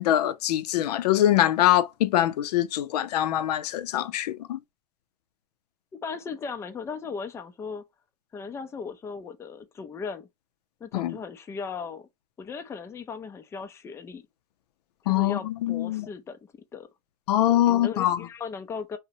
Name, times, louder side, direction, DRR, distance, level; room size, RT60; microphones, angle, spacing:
voice 1, 0.0-4.6 10.9-11.2 15.1-16.1 17.3-18.2, left 13 dB, 90° left, 0.4 m, -23 dB
voice 2, 5.9-7.8 8.3-10.3 10.8-12.1 12.4-14.2 15.0-16.9 17.5-19.0, left 5 dB, 15° left, 0.4 m, -37 dB
2.7 x 2.1 x 2.5 m
supercardioid pair, 125°, 20 cm